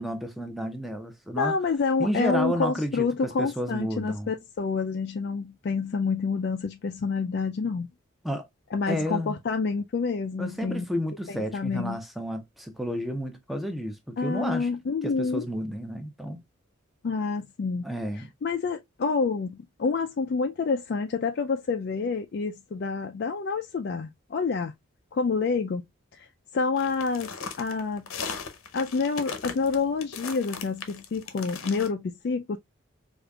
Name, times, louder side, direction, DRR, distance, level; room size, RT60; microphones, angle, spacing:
voice 1, 0.0-1.5 2.0-4.3 8.2-8.4 8.9-9.4 10.4-14.7 15.0-16.4 17.8-18.3, equal, ahead, 0.6 m, -31 dB
voice 2, 1.4-7.9 8.7-10.9 11.3-12.0 14.2-15.5 17.0-17.9 18.4-24.7 25.1-25.8 26.1-26.3 26.5-27.3 27.6-28.1 28.7-32.6, left 4 dB, 50° left, 0.3 m, -28 dB
sound 1, 26.8-31.9, left 5 dB, 85° left, 0.7 m, -38 dB
5.0 x 2.5 x 2.3 m
head